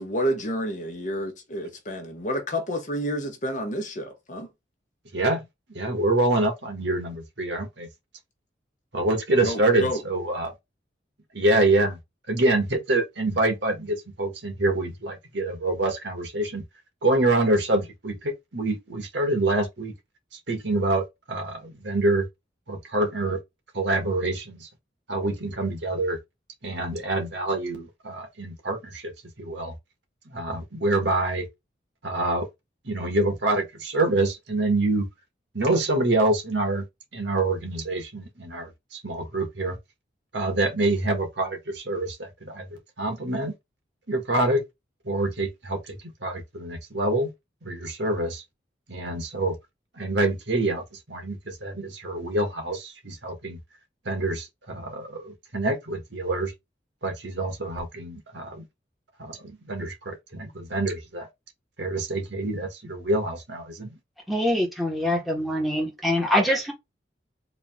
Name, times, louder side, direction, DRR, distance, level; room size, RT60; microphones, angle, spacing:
voice 1, 0.0-4.5 9.4-10.0, equal, 45° left, 1.2 m, -29 dB
voice 2, 5.1-5.4 5.7-7.9 8.9-10.5 11.3-12.0 12.3-16.6 17.0-19.9 20.5-22.2 22.7-23.4 23.7-24.7 25.1-26.2 26.6-29.1 29.4-29.7 30.2-31.5 32.0-32.5 32.8-35.0 35.5-36.8 37.1-39.8 40.3-43.5 44.1-44.6 45.0-47.3 47.6-48.4 48.9-49.5 49.9-53.6 54.0-56.5 57.0-58.6 59.2-61.3 61.8-63.9, right 2 dB, 80° right, 1.8 m, -26 dB
voice 3, 64.3-66.7, left 1 dB, ahead, 1.5 m, -24 dB
4.0 x 2.9 x 3.6 m
head